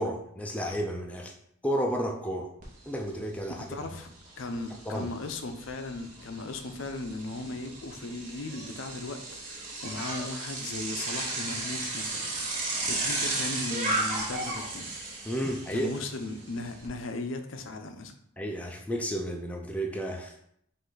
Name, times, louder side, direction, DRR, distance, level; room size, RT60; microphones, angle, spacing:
voice 1, 0.0-1.3 1.6-2.5 2.9-3.6 3.9-4.0 4.9-5.1 15.2-16.0 18.4-20.4, equal, 5° left, 1 dB, 0.3 m, -32 dB
Bicycle, 2.6-2.7 3.1-16.9, right 2 dB, 35° right, 1.0 m, -35 dB
voice 2, 3.7-4.1 4.4-14.9 15.7-18.1, left 2 dB, 60° left, 7 dB, 0.5 m, -37 dB
5.2 x 2.5 x 3.8 m, 0.72 s
head